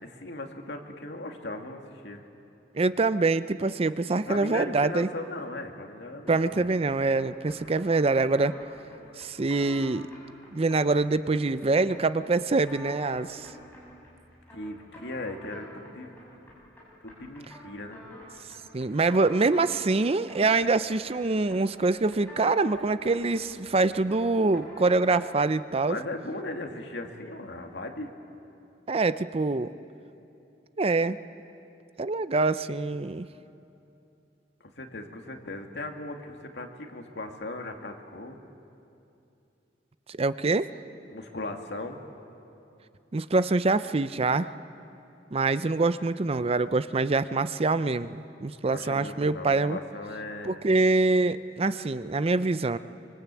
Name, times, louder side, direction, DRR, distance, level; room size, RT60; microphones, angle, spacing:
voice 1, 0.0-2.2 4.3-6.7 14.5-16.1 17.0-18.1 25.9-28.1 34.7-38.4 41.1-42.0 48.7-50.6, left 2 dB, 70° left, 3 dB, 2.3 m, -38 dB
voice 2, 2.7-5.1 6.3-8.6 9.2-10.1 10.5-13.5 18.7-26.0 28.9-29.7 30.8-31.2 32.0-33.3 40.1-40.7 43.1-44.5 45.3-49.8 50.4-52.8, right 3 dB, 35° right, 13 dB, 0.5 m, -25 dB
sound 1, 6.3-25.5, equal, 10° left, 7.6 m, -48 dB
25.0 x 25.0 x 8.4 m, 2.7 s
head